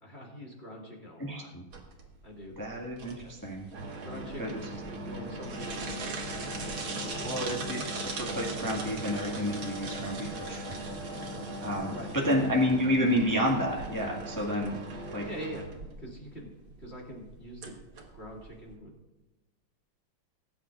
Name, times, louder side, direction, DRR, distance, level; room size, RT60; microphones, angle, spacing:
voice 1, 0.0-1.5 2.2-2.6 3.1-3.3 4.0-6.6 7.0-7.3 11.9-12.7 15.2-15.7 16.0-16.5 16.8-17.7 18.1-18.9, equal, 30° left, -2 dB, 2.5 m, -44 dB
voice 2, 1.2-1.6 2.6-3.7 4.4-4.6 7.2-10.8 11.6-11.9 12.2-14.8 15.1-15.3, equal, 10° left, -3 dB, 1.6 m, -30 dB
sound 1, 1.7-18.8, right 2 dB, 65° right, 2.3 m, -38 dB
19.5 x 9.9 x 2.5 m, 1.0 s
omnidirectional pair, 2.4 m